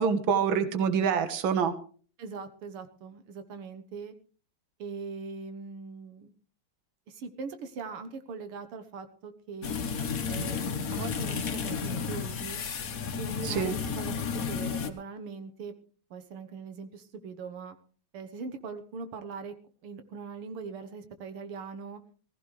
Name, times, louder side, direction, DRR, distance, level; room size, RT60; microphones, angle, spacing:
voice 1, 0.0-1.7 13.4-13.7, right 7 dB, 70° right, 10 dB, 2.0 m, -26 dB
voice 2, 2.2-4.1 4.8-6.3 7.1-9.7 10.3-12.6 13.2-15.7 16.1-17.8 18.1-19.5 19.8-22.0, right 5 dB, 85° right, 8 dB, 2.1 m, -41 dB
sound 1, 9.6-14.9, left 6 dB, 45° left, 1.4 m, -32 dB
18.5 x 15.5 x 3.2 m, 0.41 s
omnidirectional pair, 2.3 m